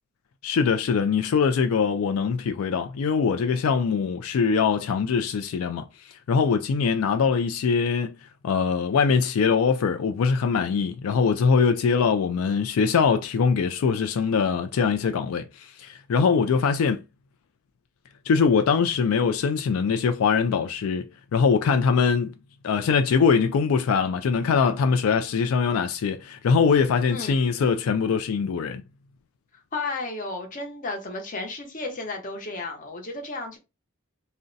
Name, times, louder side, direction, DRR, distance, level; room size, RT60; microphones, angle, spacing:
voice 1, 0.4-5.9 6.3-8.1 8.4-17.0 18.3-21.1 21.3-22.3 22.6-28.8, left 5 dB, 90° left, 0.4 m, -22 dB
voice 2, 27.1-27.4 29.7-33.6, left 3 dB, 40° left, 0.8 m, -33 dB
2.5 x 2.1 x 3.8 m
head